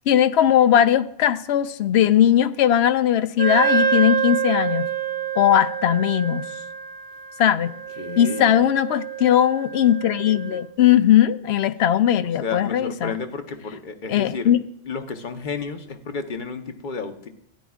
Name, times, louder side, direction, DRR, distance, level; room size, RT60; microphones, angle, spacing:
voice 1, 0.1-4.9 5.4-6.5 7.4-7.7 8.2-13.1 14.1-14.6, left 10 dB, 70° left, 13 dB, 0.8 m, -19 dB
Wind instrument woodwind instrument, 3.4-10.7, right 7 dB, 90° right, 1.1 m, -27 dB
voice 2, 8.0-8.6 12.4-14.5 14.9-17.3, left 4 dB, 45° left, 7 dB, 1.0 m, -32 dB
13.5 x 10.5 x 2.4 m, 0.75 s
omnidirectional pair, 1.2 m